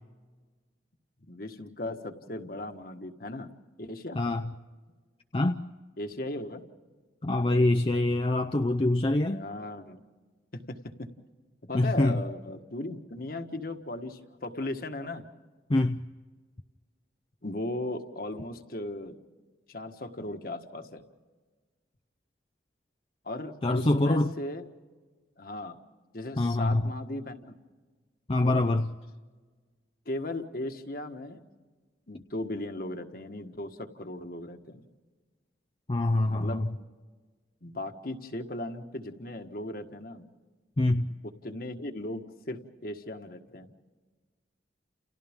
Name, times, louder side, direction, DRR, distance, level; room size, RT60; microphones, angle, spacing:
voice 1, 1.2-3.5 3.8-4.2 6.0-6.6 9.3-10.0 10.5-10.9 11.6-15.2 17.4-19.1 19.7-21.0 23.2-24.7 25.4-25.8 26.1-27.5 28.4-28.7 30.0-31.4 32.1-34.8 36.3-36.7 37.6-40.3 41.2-43.7, left 1 dB, 55° left, 6 dB, 1.6 m, -37 dB
voice 2, 4.2-4.5 5.3-5.6 7.2-9.4 11.7-12.2 15.7-16.1 23.6-24.3 26.4-26.9 28.3-28.9 35.9-36.7 40.8-41.1, left 2 dB, 30° left, 5 dB, 0.6 m, -25 dB
30.0 x 29.5 x 3.7 m, 1.4 s
head